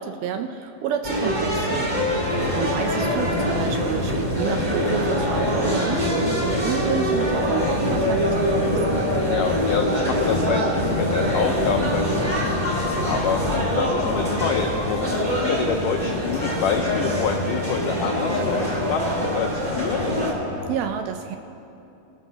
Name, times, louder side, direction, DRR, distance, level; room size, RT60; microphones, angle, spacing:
voice 1, 0.0-2.0 2.5-9.1 20.7-21.4, right 8 dB, 80° right, 6 dB, 2.2 m, -29 dB
sound 1, 1.0-20.3, equal, 15° right, 2.2 m, -24 dB
voice 2, 2.2-2.6 9.2-20.1, left 6 dB, 85° left, 3 dB, 1.8 m, -27 dB
sound 2, 8.3-20.8, left 1 dB, 45° left, 1.2 m, -34 dB
24.5 x 13.0 x 2.8 m, 2.8 s
omnidirectional pair, 4.7 m